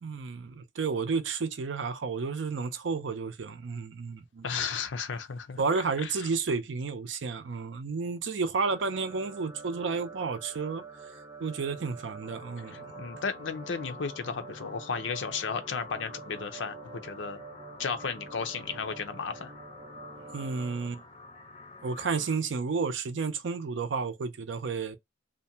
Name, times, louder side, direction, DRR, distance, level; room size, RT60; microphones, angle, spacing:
voice 1, 0.0-4.5 5.6-10.8 11.4-12.9 20.3-21.0 21.8-25.0, right 4 dB, 75° right, 0.5 m, -31 dB
voice 2, 4.4-6.3 12.7-17.4 17.8-19.5, left 5 dB, 80° left, 0.5 m, -34 dB
sound 1, 8.7-20.9, right 4 dB, 15° right, 0.5 m, -47 dB
sound 2, 12.2-22.3, left 3 dB, 35° left, 0.5 m, -49 dB
2.5 x 2.1 x 2.7 m
head